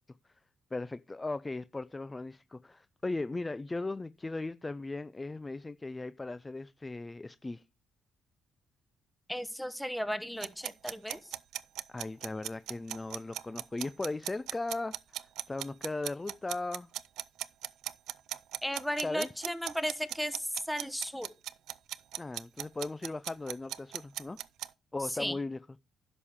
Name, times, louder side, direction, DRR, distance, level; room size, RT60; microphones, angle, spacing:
voice 1, 0.7-7.6 11.9-16.9 19.0-19.3 22.2-24.4 24.9-25.6, left 2 dB, 20° left, 0.4 m, -37 dB
voice 2, 9.3-11.3 18.6-21.3 25.0-25.4, equal, ahead, 1.0 m, -35 dB
sound 1, 10.4-24.7, right 13 dB, 80° right, 0.4 m, -38 dB
11.0 x 7.1 x 3.6 m
cardioid pair, 90°, 0 cm